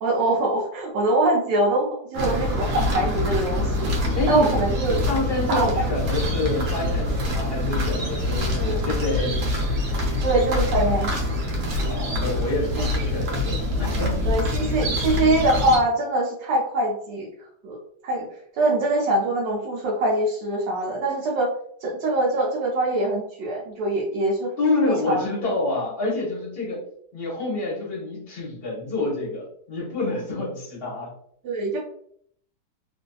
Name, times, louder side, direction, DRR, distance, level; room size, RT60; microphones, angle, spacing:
voice 1, 0.0-3.9 4.3-5.0 5.5-5.9 8.4-8.8 10.2-11.2 13.0-13.1 14.2-17.3 17.6-17.8 18.0-18.3 18.6-21.5 21.8-24.5 24.8-25.5 31.4-31.8, right 2 dB, 90° right, -4 dB, 1.3 m, -23 dB
sound 1, 2.1-15.8, left 1 dB, 70° right, 1.2 m, -25 dB
voice 2, 4.1-4.5 5.1-8.5 8.8-9.5 11.8-14.2 24.6-26.8 27.1-31.1, left 2 dB, 40° left, -4 dB, 0.9 m, -27 dB
3.1 x 2.5 x 2.2 m, 0.66 s
omnidirectional pair, 1.9 m